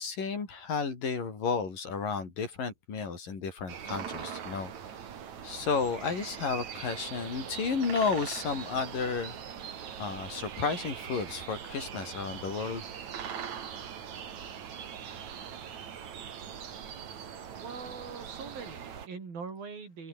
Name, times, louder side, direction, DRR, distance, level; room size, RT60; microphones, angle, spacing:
voice 1, 0.0-4.7 5.4-9.3 10.0-12.8, left 5 dB, 65° left, 6.4 m, -32 dB
sound 1, 3.7-19.1, right 8 dB, 55° right, 3.4 m, -41 dB
voice 2, 17.6-20.1, right 5 dB, 75° right, 7.5 m, -42 dB
open air
omnidirectional pair, 4.2 m